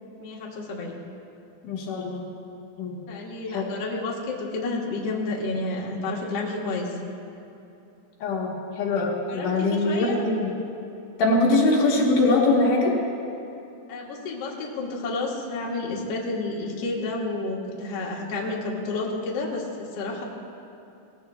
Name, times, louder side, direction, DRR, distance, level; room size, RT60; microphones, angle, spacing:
voice 1, 0.2-1.0 3.1-6.9 9.3-10.2 13.9-20.2, left 3 dB, 55° left, -3 dB, 2.2 m, -30 dB
voice 2, 1.6-2.2 2.8-3.0 3.5-3.7 8.2-10.5 11.2-13.0, left 2 dB, 70° left, -2 dB, 2.9 m, -22 dB
18.0 x 16.0 x 2.3 m, 2.9 s
omnidirectional pair, 3.9 m